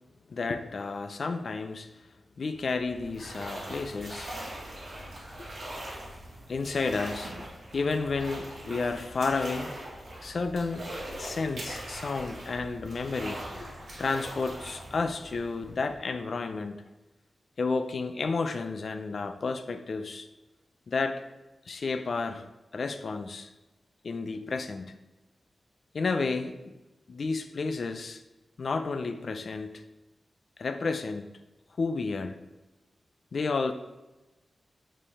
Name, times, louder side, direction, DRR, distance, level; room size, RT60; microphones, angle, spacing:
voice 1, 0.3-1.9 2.4-4.3 5.4-5.5 6.5-7.3 7.7-9.7 10.2-10.9 11.2-13.7 14.0-16.8 17.6-20.3 20.9-21.3 21.7-23.5 24.0-24.9 25.9-26.7 27.1-28.2 28.6-29.8 30.6-31.3 31.8-32.4 33.3-33.7, left 4 dB, 50° left, 8 dB, 0.5 m, -31 dB
sound 1, 2.4-16.2, right 1 dB, 50° right, 1.9 m, -41 dB
5.4 x 5.3 x 4.1 m, 1.1 s
wide cardioid pair, 170°, 0 cm